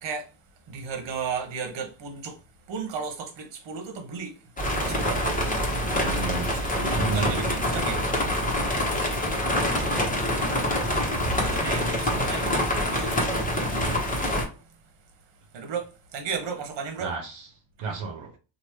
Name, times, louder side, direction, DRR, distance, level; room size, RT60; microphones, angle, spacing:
voice 1, 0.0-5.7 6.5-8.2 11.4-12.5 12.8-13.9 14.4-14.8 15.3-17.1, right 5 dB, 70° right, 1.1 m, -36 dB
sound 1, 4.6-14.4, left 1 dB, 15° left, 1.2 m, -26 dB
voice 2, 5.9-7.4 17.0-17.5 17.8-18.4, right 4 dB, 85° right, 0.8 m, -32 dB
3.0 x 2.6 x 3.0 m
cardioid pair, 80°, 46 cm